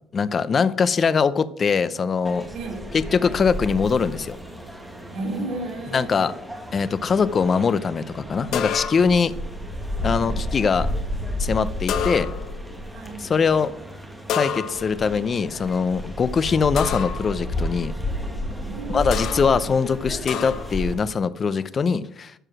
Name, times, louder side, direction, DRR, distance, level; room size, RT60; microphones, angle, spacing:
voice 1, 0.1-2.5 2.9-4.4 5.9-6.3 6.7-9.3 10.0-10.9 11.4-12.3 13.2-13.7 14.3-17.9 18.9-22.3, left 5 dB, 30° left, 0.6 m, -22 dB
sound 1, 2.2-20.9, left 1 dB, 5° right, 1.7 m, -32 dB
voice 2, 2.5-2.9 5.1-6.2 10.2-10.4 12.9-13.2 18.6-19.6, right 2 dB, 70° right, 4.7 m, -33 dB
sound 2, 8.5-9.3 11.9-12.6 14.3-15.1 16.8-17.3 19.1-19.6 20.3-20.8, left 8 dB, 60° left, 1.0 m, -29 dB
12.5 x 4.8 x 6.1 m
cardioid pair, 145°, 0 cm